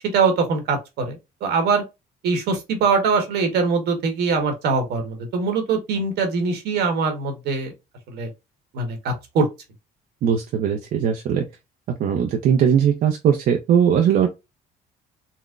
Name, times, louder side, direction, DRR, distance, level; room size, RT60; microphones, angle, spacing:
voice 1, 0.0-1.8 2.2-7.7 8.1-8.3 8.7-9.4, right 4 dB, 75° right, 1.3 m, -22 dB
voice 2, 10.2-11.5 12.0-14.3, right 8 dB, 60° right, 0.6 m, -19 dB
4.0 x 2.1 x 2.4 m
cardioid pair, 110°, 17 cm